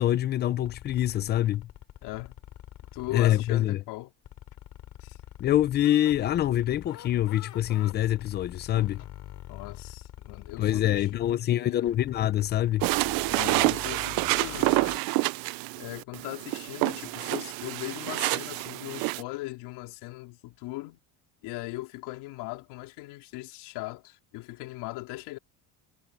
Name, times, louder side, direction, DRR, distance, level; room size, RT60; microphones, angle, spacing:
voice 1, 0.0-1.7 3.1-3.8 5.4-9.0 10.6-12.9, left 12 dB, 25° left, 0.4 m, -25 dB
sound 1, 0.6-3.7 4.2-11.3 11.9-15.0, left 12 dB, 40° left, 3.3 m, -45 dB
voice 2, 2.0-2.3 2.9-4.1 5.0-5.2 8.8-9.1 9.5-12.0 13.3-14.7 15.8-21.0 21.4-25.4, left 20 dB, 65° left, 4.0 m, -39 dB
sound 2, 12.8-19.2, right 24 dB, 55° right, 0.5 m, -28 dB
cardioid pair, 165°, 43 cm